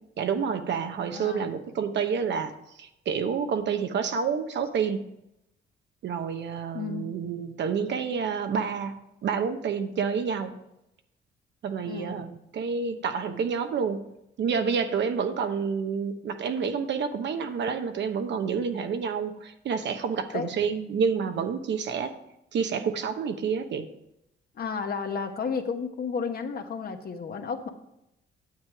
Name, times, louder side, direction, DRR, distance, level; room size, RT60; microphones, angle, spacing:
voice 1, 0.2-2.5 2.8-5.1 6.0-10.5 11.6-14.1 14.4-22.2 22.5-23.9, right 6 dB, 65° right, 8 dB, 1.0 m, -29 dB
voice 2, 1.1-1.5 6.7-7.1 11.9-12.2 20.3-20.5 24.5-27.7, left 5 dB, 50° left, 5 dB, 1.2 m, -32 dB
9.5 x 7.6 x 4.8 m, 0.85 s
cardioid pair, 90°, 20 cm